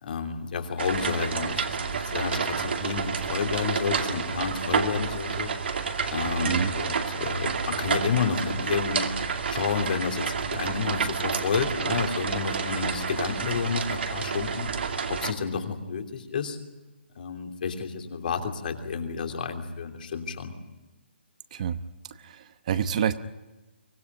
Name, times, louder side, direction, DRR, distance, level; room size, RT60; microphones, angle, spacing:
voice 1, 0.0-5.5 6.1-9.1 9.5-14.7 15.1-16.6 17.1-20.6, left 6 dB, 50° left, 4 dB, 3.0 m, -30 dB
sound 1, 0.8-15.3, right 5 dB, 70° right, 2.4 m, -29 dB
voice 2, 22.2-23.2, right 8 dB, 40° right, 12 dB, 0.9 m, -27 dB
24.0 x 17.5 x 9.7 m, 1.1 s
hypercardioid pair, 160°, 6 cm